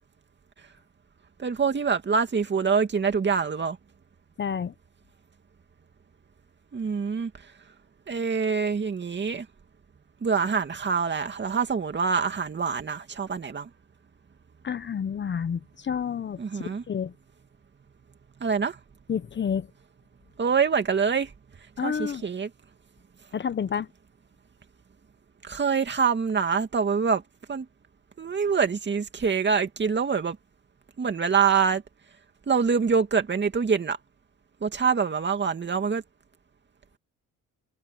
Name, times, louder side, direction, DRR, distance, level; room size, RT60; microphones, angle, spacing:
voice 1, 1.4-3.8 6.7-7.5 8.1-9.5 10.2-13.7 16.4-16.8 18.4-18.8 20.4-21.3 21.8-22.5 25.4-27.2 27.5-27.7 28.2-30.4 31.0-31.8 32.5-34.0 34.6-36.0, right 6 dB, 35° right, 2.4 m, -25 dB
voice 2, 4.4-4.7 14.6-17.1 19.1-19.7 21.8-22.2 23.3-23.9, left 7 dB, 40° left, 0.8 m, -29 dB
cardioid pair, 90°, 30 cm